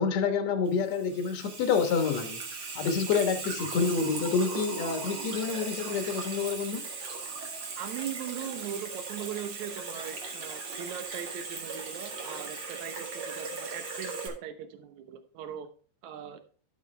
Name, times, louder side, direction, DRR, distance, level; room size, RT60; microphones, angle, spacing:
voice 1, 0.0-2.4 2.8-6.8, left 5 dB, 60° left, 6 dB, 1.9 m, -28 dB
Water tap faucet / Sink (filling or washing), 0.7-14.3, right 4 dB, 50° right, 1.8 m, -38 dB
voice 2, 7.8-15.7 16.0-16.4, right 9 dB, 75° right, 7 dB, 1.7 m, -39 dB
12.0 x 6.8 x 3.3 m, 0.40 s
omnidirectional pair, 4.7 m